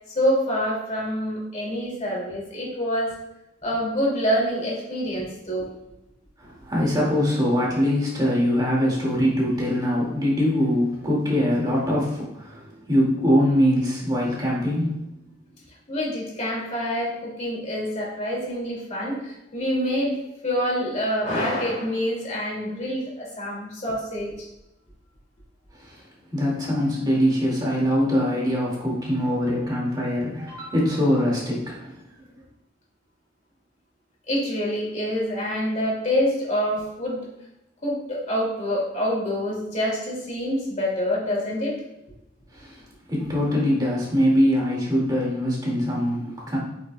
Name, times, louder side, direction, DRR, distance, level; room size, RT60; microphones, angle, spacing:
voice 1, 0.1-3.1 3.6-5.7 15.9-24.5 34.3-37.3 37.8-41.8, equal, 40° left, -4 dB, 2.4 m, -26 dB
voice 2, 6.4-15.0 25.8-26.0 26.3-32.0 42.5-42.8 43.1-46.6, equal, 20° right, -5 dB, 2.1 m, -23 dB
8.3 x 6.1 x 2.2 m, 0.86 s
head